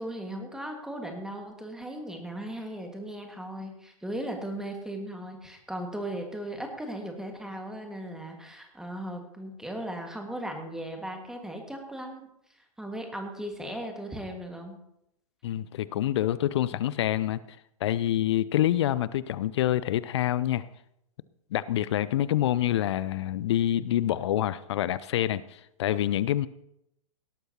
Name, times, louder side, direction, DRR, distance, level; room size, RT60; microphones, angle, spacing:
voice 1, 0.0-14.8, right 1 dB, 5° right, 3 dB, 1.8 m, -37 dB
voice 2, 15.4-17.4 17.8-20.7 21.5-26.5, left 12 dB, 50° left, 18 dB, 0.5 m, -26 dB
18.0 x 12.5 x 2.9 m, 0.79 s
figure-of-eight pair, 110°, 18 cm